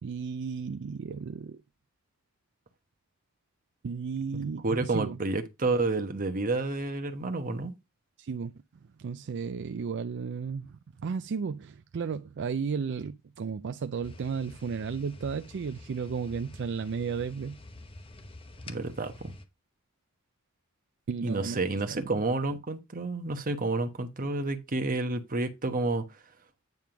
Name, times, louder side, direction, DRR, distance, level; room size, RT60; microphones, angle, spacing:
voice 1, 0.0-1.6 3.8-5.2 8.2-8.5 9.0-17.6 21.1-21.6 21.9-22.2, right 5 dB, 55° right, 0.4 m, -34 dB
voice 2, 4.3-7.7 18.7-19.3 21.2-26.0, right 3 dB, 40° right, 1.1 m, -30 dB
sound 1, 14.0-19.5, left 2 dB, 25° left, 0.9 m, -48 dB
9.3 x 3.5 x 5.9 m
head